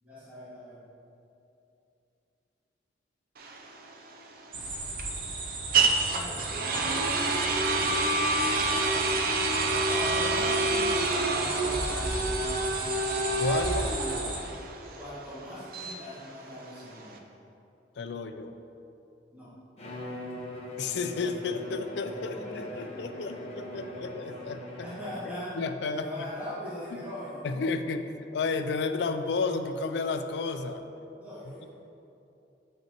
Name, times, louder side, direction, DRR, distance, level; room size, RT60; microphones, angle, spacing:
voice 1, 0.0-0.8 6.1-7.1 9.8-12.7 15.0-17.2 19.3-19.5 22.4-23.2 23.7-23.8 24.8-25.6 25.9-27.7 31.2-31.7, equal, 10° right, -12 dB, 1.4 m, -41 dB
sound 1, 3.4-17.2, right 2 dB, 55° right, 0.5 m, -28 dB
sound 2, 4.5-14.4, right 2 dB, 90° right, 0.8 m, -35 dB
voice 2, 13.4-13.9 18.0-18.5 20.8-24.9 25.6-26.1 26.9-27.0 27.4-28.1 28.3-30.8, left 4 dB, 70° left, 8 dB, 0.4 m, -32 dB
Bowed string instrument, 19.8-25.4, left 1 dB, 35° left, 1.0 m, -41 dB
7.8 x 5.4 x 2.9 m, 2.8 s
head